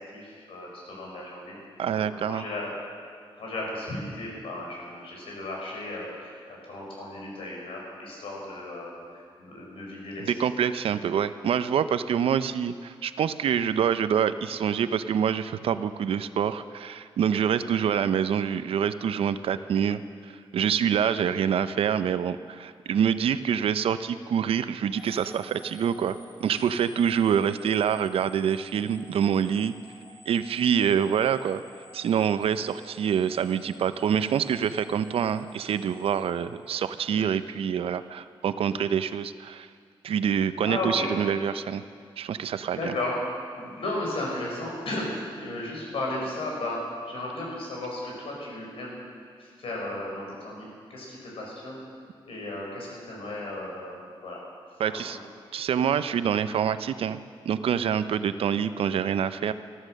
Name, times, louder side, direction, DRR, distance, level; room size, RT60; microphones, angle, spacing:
voice 1, 0.0-1.6 2.0-2.7 3.4-10.3 40.6-41.1 42.7-43.2 43.5-49.0 49.4-51.8 52.2-54.4 54.8-55.0, left 2 dB, 80° left, -3 dB, 5.2 m, -35 dB
voice 2, 1.8-2.4 10.2-26.2 26.4-29.7 30.3-31.6 31.9-39.7 40.0-41.8 42.2-42.9 54.8-55.2 55.5-57.2 57.4-59.5, right 8 dB, 90° right, 12 dB, 0.6 m, -26 dB
sound 1, 24.9-37.0, left 1 dB, 40° left, 2.4 m, -53 dB
14.5 x 13.0 x 6.5 m, 2.1 s
wide cardioid pair, 155°, 9 cm